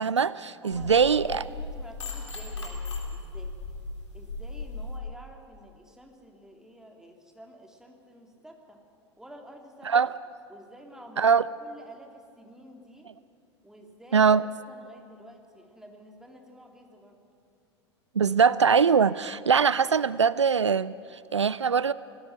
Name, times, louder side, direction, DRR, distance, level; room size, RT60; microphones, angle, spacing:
voice 1, 0.0-1.4 9.9-10.1 11.2-11.4 14.1-14.4 18.2-21.9, right 6 dB, 80° right, 18 dB, 0.4 m, -22 dB
voice 2, 0.6-3.5 4.1-8.8 9.2-10.1 10.5-13.1 13.6-14.3 14.7-17.2, equal, 5° right, 2 dB, 2.9 m, -50 dB
sound 1, 0.7-5.0, left 3 dB, 75° left, 3.5 m, -37 dB
27.0 x 18.5 x 6.1 m, 2.5 s
figure-of-eight pair, 85°, 15 cm